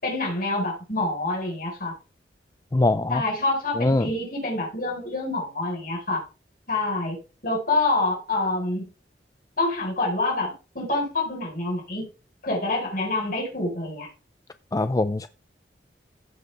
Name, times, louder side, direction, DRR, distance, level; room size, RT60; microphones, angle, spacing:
voice 1, 0.0-1.9 3.1-6.2 6.7-7.2 7.4-8.8 9.6-12.0 12.4-14.1, left 2 dB, 50° left, 4.4 m, -26 dB
voice 2, 2.7-3.2 3.8-4.1 14.7-15.3, left 2 dB, 20° left, 0.3 m, -22 dB
15.5 x 5.4 x 3.4 m
head